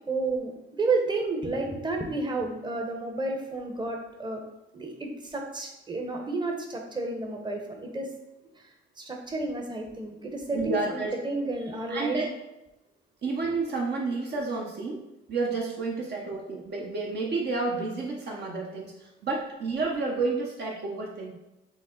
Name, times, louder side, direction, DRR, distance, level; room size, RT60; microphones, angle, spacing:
voice 1, 0.0-4.4 4.7-4.9 5.2-8.1 8.6-8.7 9.0-12.2, right 3 dB, 20° right, 1 dB, 0.9 m, -31 dB
voice 2, 10.5-11.1 11.9-12.3 13.2-15.0 15.3-21.3, right 3 dB, 55° right, -1 dB, 0.9 m, -30 dB
6.1 x 2.1 x 3.8 m, 0.96 s
cardioid pair, 90°, 20 cm